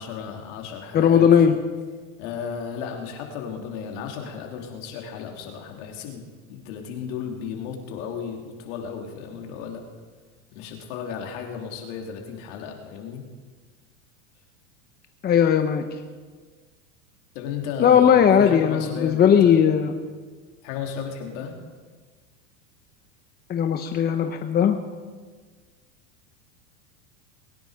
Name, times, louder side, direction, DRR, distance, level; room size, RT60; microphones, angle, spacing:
voice 1, 0.0-1.3 2.2-6.2 6.5-9.8 10.5-13.2 17.3-19.6 20.6-21.5, left 7 dB, 65° left, 2 dB, 3.4 m, -34 dB
voice 2, 0.9-1.6 15.2-15.9 17.8-19.9 23.5-24.8, left 8 dB, 25° left, 6 dB, 0.9 m, -18 dB
21.5 x 10.0 x 5.2 m, 1.4 s
supercardioid pair, 120°, 39 cm